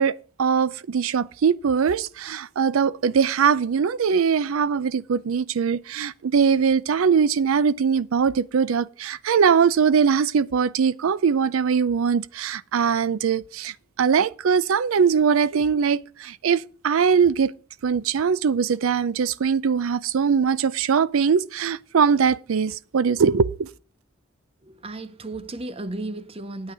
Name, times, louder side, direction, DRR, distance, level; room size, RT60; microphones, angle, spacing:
voice 1, 0.0-17.5 17.8-23.7, right 6 dB, 90° right, 0.4 m, -21 dB
voice 2, 24.6-26.7, right 2 dB, 30° right, 0.7 m, -34 dB
9.3 x 8.7 x 4.8 m
head